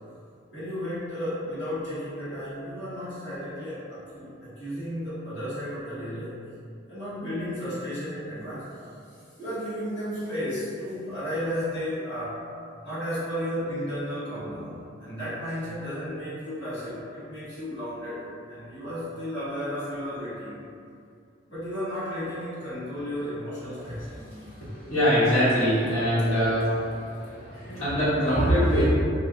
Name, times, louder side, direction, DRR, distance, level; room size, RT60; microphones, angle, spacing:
voice 1, 0.5-6.3 6.9-8.7 9.1-12.4 12.8-18.2 18.5-20.7 21.5-24.1, equal, 60° left, -13 dB, 1.4 m, -33 dB
voice 2, 23.7-28.9, equal, 85° left, -13 dB, 1.3 m, -24 dB
2.5 x 2.2 x 3.7 m, 2.5 s
head